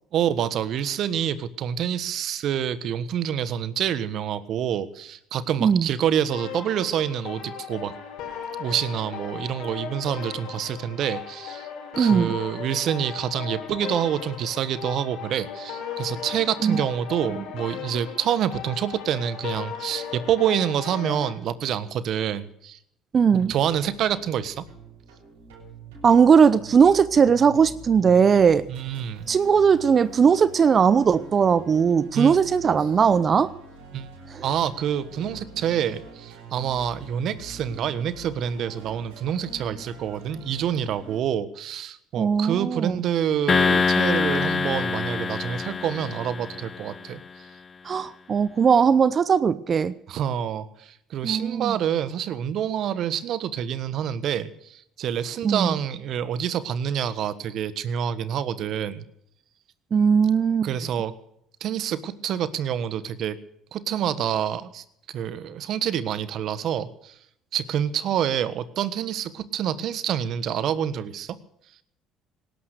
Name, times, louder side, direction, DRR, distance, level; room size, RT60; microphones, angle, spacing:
voice 1, 0.1-7.9 8.6-11.7 12.0-22.8 23.3-24.6 28.7-29.2 32.1-32.4 33.9-34.1 34.4-47.2 50.1-59.0 60.6-61.2 61.6-63.4 63.7-64.8 65.1-67.1 67.5-71.4, right 9 dB, 60° right, 15 dB, 1.3 m, -27 dB
sound 1, 6.3-21.3, left 7 dB, 70° left, 5.4 m, -37 dB
voice 2, 12.0-12.3 16.6-16.8 17.3-17.4 23.1-23.5 26.0-28.7 29.3-33.5 34.3-34.4 42.2-43.0 47.8-49.9 51.2-51.8 55.4-55.8 59.9-60.7, right 6 dB, 40° right, 16 dB, 0.8 m, -19 dB
sound 2, 23.2-41.2, right 4 dB, 85° right, 7.5 m, -44 dB
sound 3, 43.5-47.0, left 5 dB, 35° left, 0.9 m, -24 dB
18.5 x 12.0 x 6.5 m, 0.73 s
supercardioid pair, 75°, 0 cm